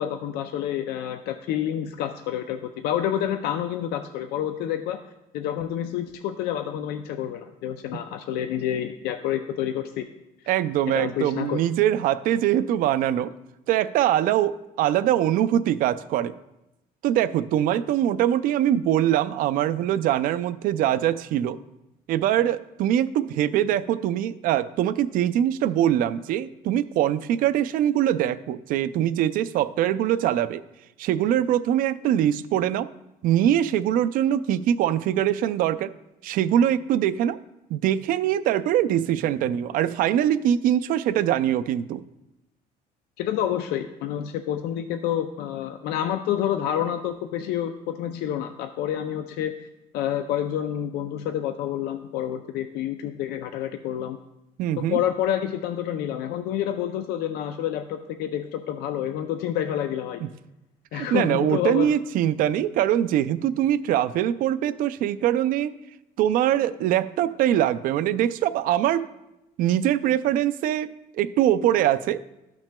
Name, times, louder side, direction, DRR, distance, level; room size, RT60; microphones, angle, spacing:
voice 1, 0.0-5.0 5.3-10.1 11.0-11.6 43.2-49.7 49.9-54.2 54.8-60.2 60.9-61.9, left 10 dB, 90° left, 7 dB, 0.4 m, -28 dB
voice 2, 10.5-13.3 13.7-16.3 17.0-21.6 22.1-30.6 31.0-32.9 33.2-35.9 36.2-37.4 37.7-42.0 54.6-55.0 60.2-60.3 60.9-65.7 66.2-69.1 69.6-70.9 71.1-72.2, right 11 dB, 60° right, 15 dB, 0.4 m, -23 dB
13.5 x 5.9 x 2.2 m, 0.93 s
cardioid pair, 160°, 16 cm